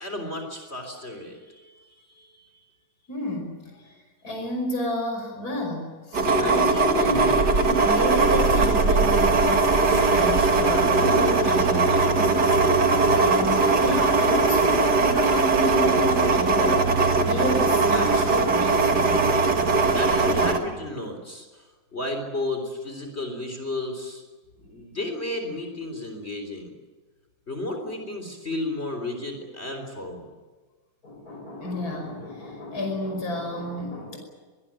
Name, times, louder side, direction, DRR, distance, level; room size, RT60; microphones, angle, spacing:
voice 1, 0.0-2.5 19.9-21.7 21.9-24.2 24.7-26.8 27.5-30.3, left 2 dB, 30° left, 4 dB, 3.9 m, -33 dB
voice 2, 3.1-3.7 4.2-16.9 17.2-19.3 24.6-24.7 31.0-34.2, left 1 dB, 50° left, 2 dB, 6.0 m, -31 dB
sound 1, 6.1-20.6, right 3 dB, 55° right, 2.7 m, -20 dB
23.5 x 20.5 x 8.9 m, 1.3 s
omnidirectional pair, 2.1 m